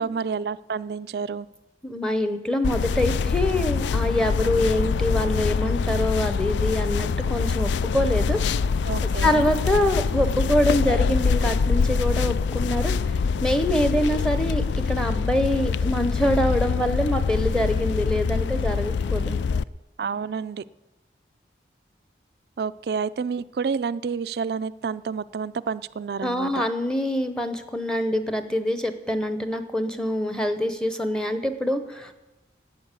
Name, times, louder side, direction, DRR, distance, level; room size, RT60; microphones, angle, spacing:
voice 1, 0.0-1.5 8.9-9.5 20.0-20.6 22.6-26.6, right 5 dB, 60° right, 16 dB, 0.3 m, -29 dB
voice 2, 1.8-8.4 9.2-19.4 26.2-32.1, left 1 dB, 5° left, 8 dB, 0.8 m, -25 dB
sound 1, 2.6-19.6, left 5 dB, 80° left, 0.3 m, -24 dB
11.5 x 8.8 x 8.2 m, 1.1 s
head